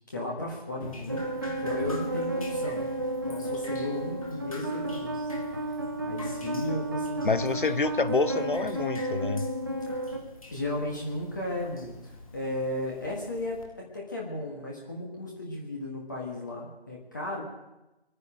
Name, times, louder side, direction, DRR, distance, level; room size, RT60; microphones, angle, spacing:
voice 1, 0.1-1.2 1.6-2.9 3.2-5.3 5.5-5.6 6.0-7.7 10.5-17.4, left 1 dB, 20° left, -3 dB, 1.6 m, -35 dB
Drip, 0.8-13.6, left 2 dB, 35° left, 2.1 m, -47 dB
sound 1, 1.1-10.2, right 1 dB, 20° right, 0.9 m, -32 dB
voice 2, 7.2-9.5, left 4 dB, 55° left, 16 dB, 0.7 m, -27 dB
24.0 x 9.8 x 5.0 m, 0.98 s
figure-of-eight pair, 165°, 31 cm